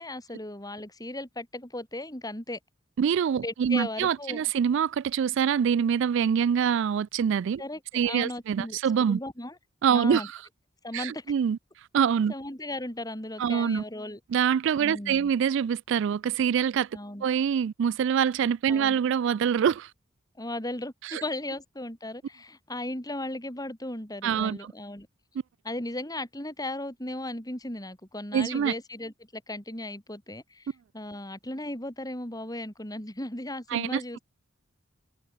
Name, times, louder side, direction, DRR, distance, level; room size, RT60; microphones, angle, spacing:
voice 1, 0.0-2.6 3.4-4.5 7.6-8.8 9.1-9.6 9.9-10.3 10.8-11.3 12.3-14.2 14.8-15.3 16.9-17.2 18.7-19.0 20.4-25.1 25.6-34.2, left 1 dB, 20° left, 4.7 m, -36 dB
voice 2, 3.0-7.6 7.9-9.2 9.8-10.3 10.9-11.6 11.9-12.3 13.4-13.8 14.3-16.9 17.2-19.9 21.0-21.2 24.2-24.7 28.3-28.7 33.7-34.2, right 7 dB, 65° right, 0.3 m, -25 dB
open air
head